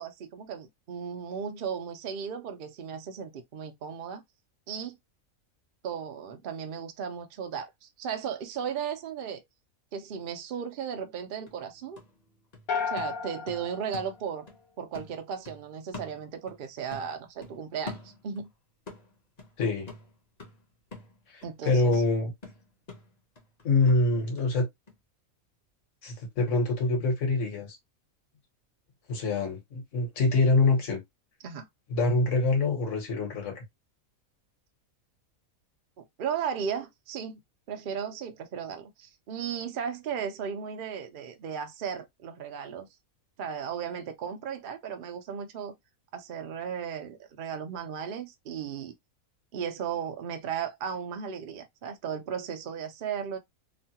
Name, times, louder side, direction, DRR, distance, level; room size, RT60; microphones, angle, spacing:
voice 1, 0.0-4.2 4.7-5.0 5.8-9.4 9.9-12.0 12.8-14.5 14.8-18.5 21.4-21.9 31.4-31.7 36.0-37.4 37.7-42.9 43.4-45.7 46.1-48.9 49.5-53.4, right 7 dB, 60° right, 0.5 m, -35 dB
sound 1, 11.0-11.1 11.5-14.6 14.9-16.7 16.9-18.5 18.9-24.5 24.9-25.0, left 2 dB, 35° left, 0.9 m, -46 dB
sound 2, 12.7-14.9, left 6 dB, 85° left, 1.1 m, -34 dB
voice 2, 21.3-22.3 23.6-24.7 26.0-27.8 29.1-31.0 31.9-33.6, left 3 dB, 60° left, 1.4 m, -25 dB
3.1 x 2.2 x 2.8 m
omnidirectional pair, 1.5 m